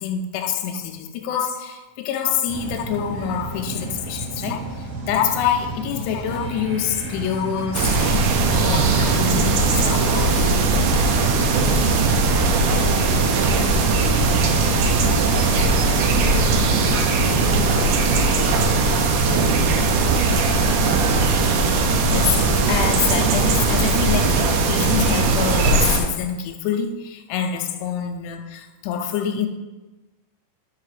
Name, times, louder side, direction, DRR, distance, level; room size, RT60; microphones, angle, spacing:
voice 1, 0.0-10.4 22.1-29.5, left 8 dB, 85° left, 4 dB, 2.6 m, -26 dB
sound 1, 2.5-19.6, right 2 dB, 60° right, 2.6 m, -32 dB
sound 2, 7.7-26.0, right 3 dB, 80° right, 2.6 m, -19 dB
sound 3, 10.4-18.0, left 1 dB, 60° left, 2.5 m, -32 dB
voice 2, 11.4-14.4 14.8-19.6 20.1-21.3, right 2 dB, 40° right, -6 dB, 1.2 m, -35 dB
6.7 x 4.7 x 4.9 m, 1.1 s
omnidirectional pair, 4.9 m